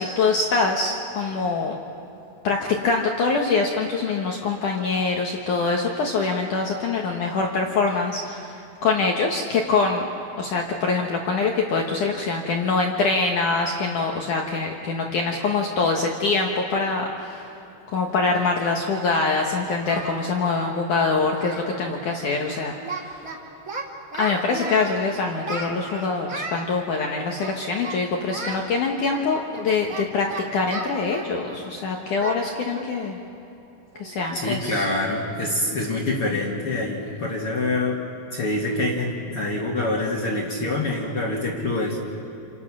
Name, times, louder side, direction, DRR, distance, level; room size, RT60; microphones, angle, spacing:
voice 1, 0.0-1.8 2.4-10.0 10.4-17.6 17.9-23.2 24.2-33.2 34.0-34.9, left 4 dB, 90° left, 1 dB, 1.7 m, -24 dB
Singing, 19.0-20.2 20.5-20.7 21.0-21.1 21.3-21.7 22.0-22.2 22.5-23.4 23.7-25.0 25.4-26.6 27.3-28.0 28.3-28.6 29.1-31.7 32.2-32.4 32.8-32.9 33.4-33.5 33.9-34.2, right 3 dB, 25° right, 1.7 m, -35 dB
voice 2, 34.3-38.0 38.3-42.0, left 2 dB, 55° left, -1 dB, 1.6 m, -25 dB
30.0 x 28.5 x 6.2 m, 2.9 s
omnidirectional pair, 5.8 m